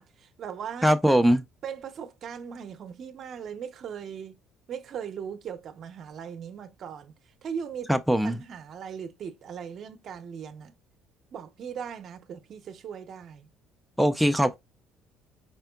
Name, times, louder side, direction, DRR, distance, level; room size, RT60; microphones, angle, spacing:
voice 1, 0.0-1.0 1.6-4.4 4.7-7.1 7.4-7.9 8.2-10.7 11.3-13.5, right 7 dB, 50° right, 0.6 m, -39 dB
voice 2, 0.8-1.4 7.9-8.4 14.0-14.6, equal, ahead, 0.3 m, -21 dB
4.4 x 3.5 x 2.2 m
cardioid pair, 110°, 0 cm